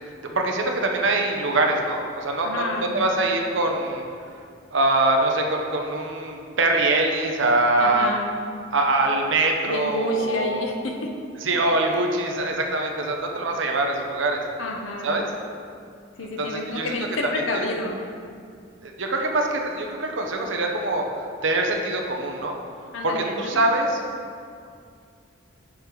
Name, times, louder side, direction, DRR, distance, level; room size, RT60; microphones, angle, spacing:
voice 1, 0.2-2.6 2.9-4.0 4.7-8.1 8.7-10.6 11.4-14.4 15.0-15.3 16.4-16.9 17.5-17.6 18.8-22.6 23.0-24.0, right 2 dB, 75° right, 1 dB, 0.8 m, -23 dB
voice 2, 2.4-2.9 7.8-8.3 9.6-11.1 14.6-15.1 16.2-18.0 22.9-23.6, left 1 dB, 85° left, 2 dB, 0.8 m, -29 dB
6.4 x 4.7 x 5.0 m, 2.3 s
head